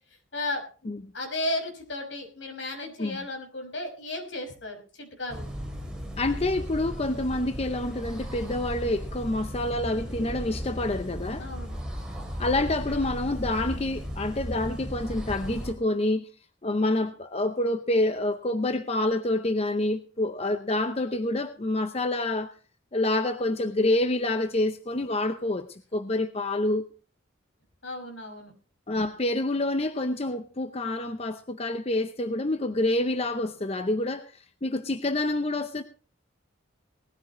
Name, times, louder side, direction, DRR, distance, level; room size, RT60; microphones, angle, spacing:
voice 1, 0.3-5.4 11.4-11.8 27.8-28.5, left 1 dB, 75° left, 5.8 m, -34 dB
sound 1, 5.3-15.7, equal, 5° right, 3.1 m, -36 dB
voice 2, 6.2-11.5 12.4-16.3 16.6-22.5 22.9-26.9 28.9-35.8, left 2 dB, 30° left, 0.7 m, -27 dB
19.5 x 14.5 x 3.1 m
head